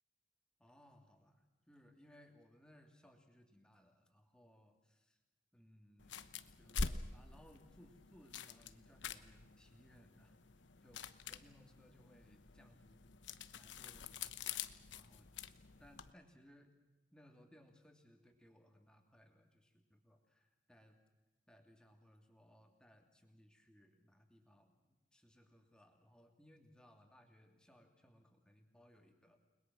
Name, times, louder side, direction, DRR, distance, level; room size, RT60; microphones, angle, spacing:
voice 1, 0.6-5.2 5.5-10.4 10.8-13.2 13.5-14.7 15.0-15.3 15.8-16.7 17.1-21.0 21.5-29.4, equal, 5° left, 3 dB, 2.7 m, -65 dB
sound 1, 6.0-16.1, left 4 dB, 75° left, 1.0 m, -47 dB
30.0 x 21.0 x 6.2 m, 1.1 s
head